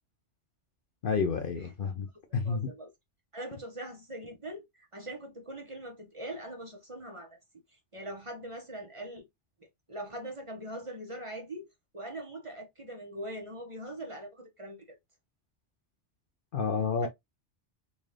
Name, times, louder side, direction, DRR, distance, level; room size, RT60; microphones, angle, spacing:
voice 1, 1.0-2.1 2.3-2.7 16.5-17.1, left 5 dB, 55° left, 0.7 m, -29 dB
voice 2, 1.6-1.9 2.3-2.9 3.3-7.3 7.7-9.2 9.6-11.7 11.9-15.0 17.0-17.1, right 1 dB, 30° right, 1.0 m, -42 dB
3.9 x 2.6 x 3.1 m
omnidirectional pair, 1.2 m